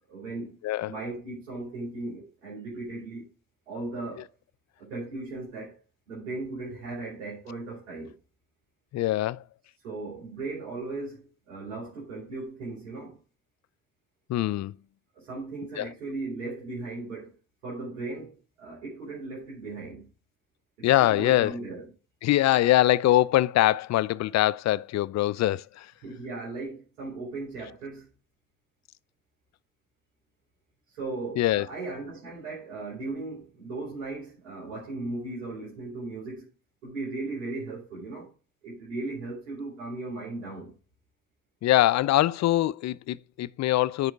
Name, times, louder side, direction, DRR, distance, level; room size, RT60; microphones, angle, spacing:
voice 1, 0.1-0.6 0.8-3.3 3.7-4.3 4.8-5.8 6.1-8.2 9.8-13.2 15.1-17.3 17.6-20.1 20.8-21.8 26.0-28.1 30.9-36.5 36.8-38.3 38.6-40.7, right 2 dB, 85° right, 3.0 m, -37 dB
voice 2, 0.6-1.0 8.9-9.4 14.3-14.8 15.8-15.9 20.8-21.5 22.2-25.9 31.4-31.7 41.6-44.1, left 15 dB, 50° left, 0.5 m, -23 dB
9.5 x 5.0 x 4.7 m
hypercardioid pair, 45°, 36 cm